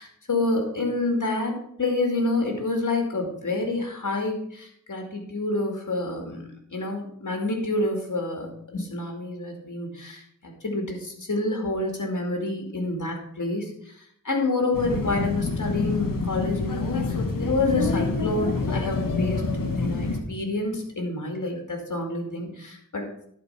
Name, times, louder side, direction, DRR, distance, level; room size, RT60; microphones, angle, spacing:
voice 1, 0.0-19.4 19.8-23.3, left 2 dB, 65° left, 2 dB, 2.4 m, -28 dB
sound 1, 14.7-20.2, left 3 dB, 90° left, 1.2 m, -27 dB
11.0 x 4.8 x 5.9 m, 0.69 s
wide cardioid pair, 50°, 32 cm